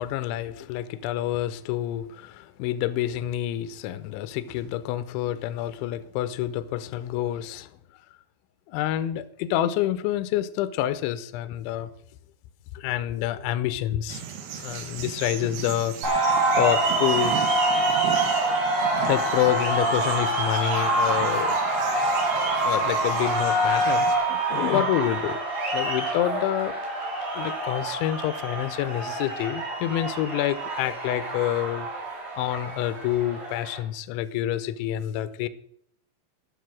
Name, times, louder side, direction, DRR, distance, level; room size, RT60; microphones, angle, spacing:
voice 1, 0.0-7.7 8.7-11.9 12.7-14.2 14.5-16.3 16.6-17.4 17.8-17.9 19.0-21.6 22.6-25.4 25.7-26.7 27.4-31.9 32.4-35.5, left 12 dB, 85° left, 12 dB, 2.7 m, -28 dB
sound 1, 14.1-24.2, right 8 dB, 75° right, 2.3 m, -38 dB
sound 2, 16.0-33.8, right 2 dB, 50° right, 4.1 m, -26 dB
11.5 x 7.3 x 6.2 m, 0.68 s
omnidirectional pair, 6.0 m